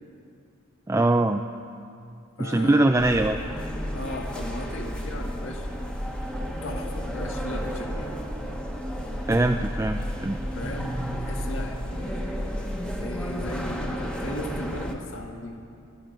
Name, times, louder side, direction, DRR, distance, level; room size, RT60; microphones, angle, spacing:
voice 1, 0.9-1.4 2.4-3.4 9.2-10.4, right 2 dB, 15° right, 5 dB, 0.3 m, -22 dB
voice 2, 2.4-3.1 3.9-5.7 6.6-8.2 10.5-12.5 13.0-15.6, left 1 dB, 70° left, 2 dB, 1.6 m, -37 dB
sound 1, 3.0-14.9, equal, 5° left, 1.0 m, -32 dB
20.0 x 12.5 x 5.2 m, 2.5 s
head